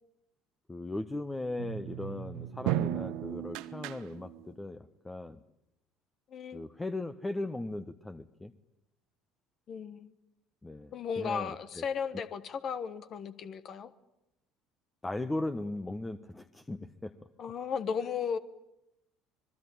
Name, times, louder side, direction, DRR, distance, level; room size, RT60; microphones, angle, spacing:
voice 1, 0.7-5.4 6.5-8.5 10.6-11.8 15.0-17.1, left 2 dB, 15° left, 11 dB, 1.2 m, -38 dB
sound 1, 1.6-4.5, right 13 dB, 60° right, 1.2 m, -35 dB
voice 2, 6.3-6.7 9.7-10.1 10.9-13.9 17.4-18.4, left 6 dB, 45° left, 13 dB, 1.3 m, -35 dB
26.0 x 22.5 x 8.8 m, 0.87 s
figure-of-eight pair, 60°, 0 cm